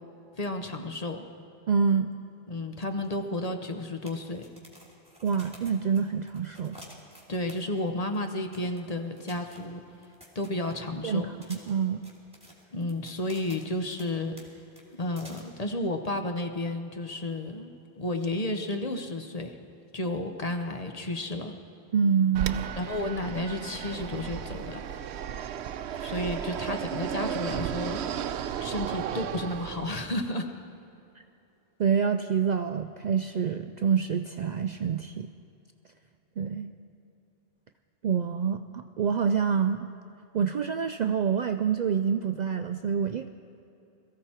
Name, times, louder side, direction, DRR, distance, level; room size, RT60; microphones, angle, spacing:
voice 1, 0.4-1.2 2.5-4.5 7.3-9.8 10.3-11.3 12.7-14.3 15.0-19.6 19.9-21.6 22.8-24.8 25.9-28.1 28.6-30.5, left 1 dB, 40° left, 5 dB, 1.0 m, -32 dB
voice 2, 1.7-2.1 5.2-6.8 11.0-12.0 21.9-22.6 31.8-35.3 36.4-36.7 38.0-39.9 40.3-43.3, right 6 dB, 55° right, 7 dB, 0.5 m, -27 dB
sound 1, 3.0-3.1 3.3-3.4 4.0-7.9 8.1-8.2 8.5-8.8 9.2-11.0 11.4-14.1 14.4-14.5 14.8-15.4, equal, 5° right, 2.8 m, -51 dB
Fixed-wing aircraft airplane, 22.3-30.1, right 9 dB, 90° right, 0.9 m, -34 dB
22.0 x 14.5 x 4.4 m, 2.9 s
omnidirectional pair, 1.1 m